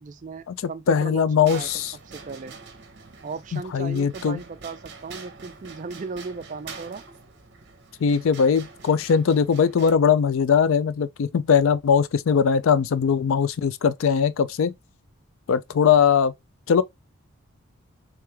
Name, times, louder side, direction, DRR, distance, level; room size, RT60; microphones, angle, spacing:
voice 1, 0.0-1.7 2.1-2.6 3.2-7.0, right 4 dB, 35° right, 0.3 m, -36 dB
voice 2, 0.9-1.9 3.5-4.4 8.0-14.7 15.5-16.3 16.7-16.8, left 6 dB, 65° left, 0.3 m, -20 dB
sound 1, 1.5-9.9, right 5 dB, 50° right, 0.8 m, -44 dB
3.3 x 3.1 x 3.4 m
head